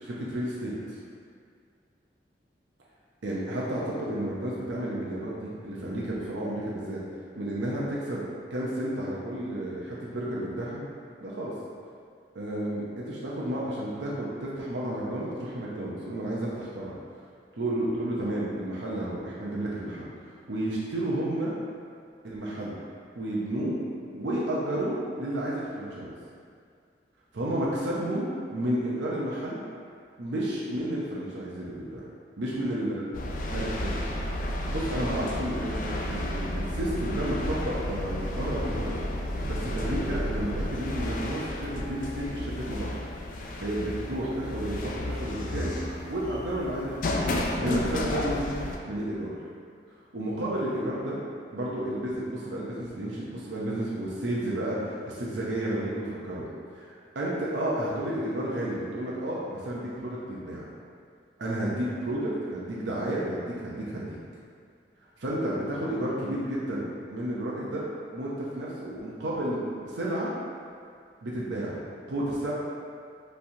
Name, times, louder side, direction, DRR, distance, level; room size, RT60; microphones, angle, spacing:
voice 1, 0.0-1.0 3.2-7.0 7.3-10.8 11.2-11.5 12.3-17.0 17.5-21.5 22.2-22.8 23.2-23.8 24.1-26.1 27.3-29.6 30.2-32.0 32.4-32.9 33.5-33.9 34.5-39.0 39.5-42.9 43.6-45.7 46.1-49.5 50.1-51.2 51.5-56.4 56.7-60.6 61.4-64.2 65.2-67.8 68.1-70.3 71.2-71.8 72.1-72.5, right 1 dB, 90° right, -6 dB, 0.7 m, -31 dB
sound 1, 33.1-48.8, left 1 dB, 45° left, 0.4 m, -32 dB
5.6 x 3.3 x 2.7 m, 2.2 s
head